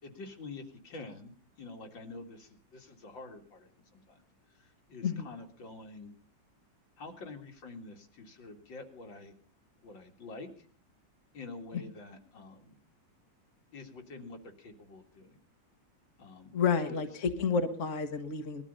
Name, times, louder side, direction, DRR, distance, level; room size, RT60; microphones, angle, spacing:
voice 1, 0.0-4.2 4.5-6.1 7.0-9.3 9.8-10.7 11.3-12.8 13.7-15.4 16.2-16.5 16.8-17.2, left 3 dB, 75° left, 3 dB, 3.0 m, -47 dB
voice 2, 16.5-18.6, left 5 dB, 40° left, 6 dB, 1.7 m, -30 dB
20.5 x 12.5 x 5.4 m, 0.41 s
omnidirectional pair, 2.1 m